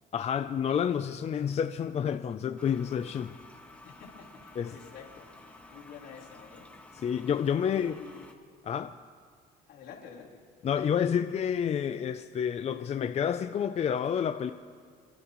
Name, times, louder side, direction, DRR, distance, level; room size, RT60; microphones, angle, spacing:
voice 1, 0.1-3.4 4.6-4.7 7.0-7.9 8.6-9.0 10.6-14.5, left 8 dB, 40° left, 8 dB, 0.5 m, -29 dB
Toilet flush, 2.6-8.3, left 2 dB, 10° left, 1.5 m, -52 dB
voice 2, 3.8-6.7 7.6-8.3 9.7-10.4, left 7 dB, 80° left, -5 dB, 4.2 m, -49 dB
29.0 x 12.0 x 3.1 m, 2.2 s
cardioid pair, 110°, 17 cm